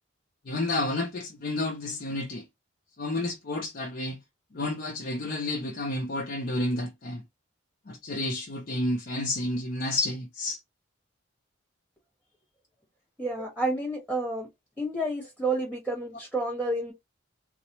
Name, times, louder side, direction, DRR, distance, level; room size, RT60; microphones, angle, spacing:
voice 1, 0.5-2.4 3.0-4.2 4.5-7.2 7.9-10.6, left 2 dB, 45° left, 0.5 m, -30 dB
voice 2, 13.2-14.5 14.8-16.9, right 1 dB, 5° right, 1.1 m, -30 dB
3.9 x 2.0 x 2.9 m
head